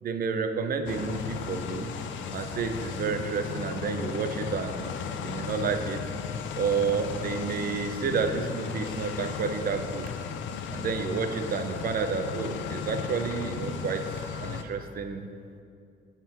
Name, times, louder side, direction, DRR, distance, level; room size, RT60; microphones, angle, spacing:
voice 1, 0.0-1.9 2.3-4.9 5.2-6.0 6.6-10.1 10.7-14.0 14.4-15.3, right 5 dB, 50° right, 7 dB, 0.6 m, -30 dB
sound 1, 0.9-14.6, left 7 dB, 75° left, 0.5 m, -35 dB
5.9 x 5.7 x 4.3 m, 2.4 s
cardioid pair, 90°, 20 cm